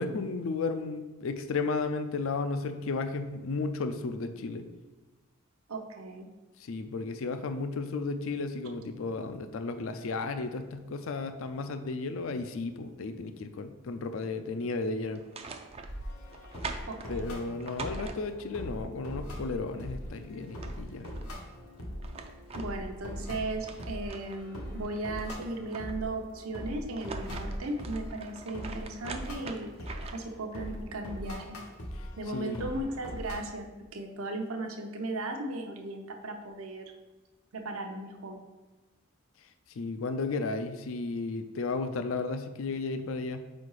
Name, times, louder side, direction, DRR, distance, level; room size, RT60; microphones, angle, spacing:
voice 1, 0.0-4.6 6.6-15.2 17.1-21.1 31.9-32.7 39.7-43.4, left 3 dB, 65° left, 8 dB, 0.4 m, -34 dB
voice 2, 5.7-6.3 16.9-17.5 22.5-29.7 30.1-31.6 32.2-33.7 33.9-36.9 37.5-38.4, right 2 dB, 75° right, 4 dB, 0.7 m, -36 dB
sound 1, 15.1-18.6 20.1-20.2 20.4-21.3 21.8-24.4 24.8-26.2 26.8-30.4, right 4 dB, 25° right, 0.3 m, -44 dB
sound 2, 15.8-33.4, equal, 90° left, 1.3 m, -41 dB
4.7 x 4.2 x 4.8 m, 1.2 s
head